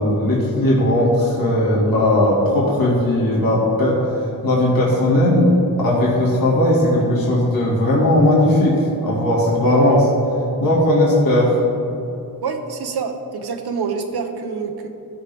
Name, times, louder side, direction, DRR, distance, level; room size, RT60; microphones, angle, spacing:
voice 1, 0.0-5.5 5.8-10.1 10.6-11.6, left 1 dB, 65° left, -6 dB, 2.3 m, -17 dB
voice 2, 12.4-14.9, right 5 dB, 85° right, 5 dB, 1.0 m, -26 dB
15.5 x 6.5 x 3.5 m, 2.9 s
wide cardioid pair, 160°, 38 cm